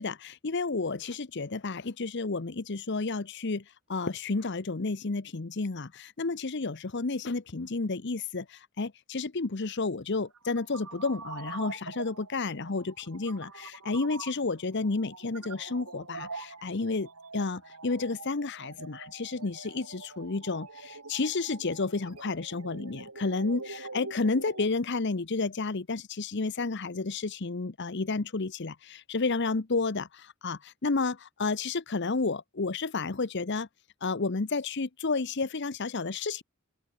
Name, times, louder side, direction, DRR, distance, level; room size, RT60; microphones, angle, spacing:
voice 1, 0.0-3.6 3.9-17.1 17.3-33.7 34.0-36.4, left 3 dB, 50° left, 0.8 m, -31 dB
sound 1, 10.1-24.7, right 3 dB, 90° right, 5.0 m, -44 dB
open air
head